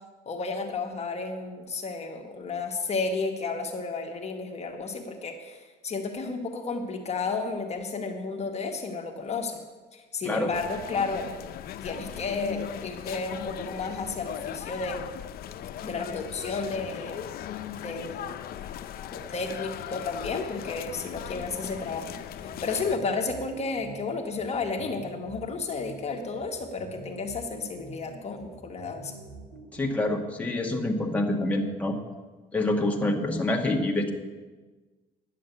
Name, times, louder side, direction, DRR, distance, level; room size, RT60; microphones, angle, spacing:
voice 1, 0.3-9.6 9.9-11.3 11.8-15.1 15.8-17.2 17.8-18.3 19.1-22.1 22.4-29.1, left 4 dB, 40° left, 2 dB, 1.4 m, -32 dB
sound 1, 10.5-23.0, left 10 dB, 65° left, 0.6 m, -38 dB
sound 2, 22.0-30.0, right 2 dB, 90° right, 2.8 m, -46 dB
voice 2, 29.7-32.0 32.5-34.1, left 2 dB, 10° left, 0 dB, 1.5 m, -26 dB
10.5 x 7.5 x 8.3 m, 1.3 s
cardioid pair, 110°, 17 cm